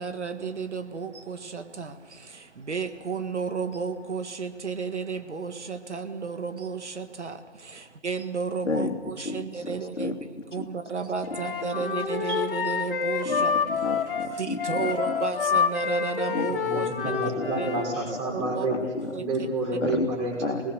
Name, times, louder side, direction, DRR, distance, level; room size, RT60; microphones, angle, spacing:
voice 1, 0.0-7.7 8.0-10.2 10.5-13.5 14.4-17.1 17.6-17.7 18.3-18.7 19.1-19.5, right 5 dB, 70° right, 8 dB, 1.9 m, -32 dB
voice 2, 8.6-10.1 10.6-10.7 13.2-15.2 16.3-16.5 17.0-17.1 17.4-17.5 18.4-19.1 19.8-20.1 20.4-20.7, left 3 dB, 85° left, 5 dB, 2.6 m, -32 dB
Wind instrument woodwind instrument, 11.3-17.9, left 6 dB, 45° left, 2.7 m, -28 dB
voice 3, 16.5-18.8 19.2-20.7, right 2 dB, 25° right, 0 dB, 5.9 m, -29 dB
26.5 x 20.0 x 6.8 m, 1.5 s
figure-of-eight pair, 150°, 36 cm